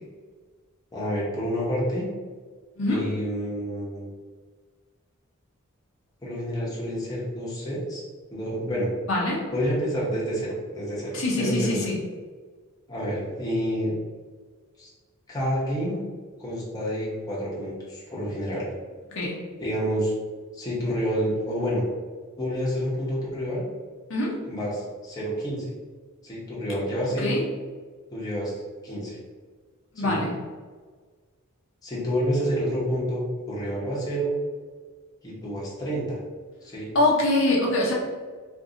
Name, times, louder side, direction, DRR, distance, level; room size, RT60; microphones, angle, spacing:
voice 1, 0.9-2.1 2.9-4.1 6.2-8.0 8.3-8.9 9.5-11.9 12.9-14.0 14.8-14.9 15.3-16.0 16.4-18.7 19.6-20.1 20.5-21.8 22.4-23.6 24.5-25.7 26.2-27.4 28.1-29.2 30.0-30.2 31.8-34.3 35.2-36.2 36.6-36.9, equal, 15° left, -6 dB, 0.8 m, -28 dB
voice 2, 2.8-3.1 9.1-9.4 11.1-12.0 19.1-19.4 24.1-24.4 27.2-27.4 29.9-30.3 36.9-37.9, left 2 dB, 60° left, -3 dB, 0.7 m, -24 dB
2.6 x 2.5 x 3.8 m, 1.5 s
head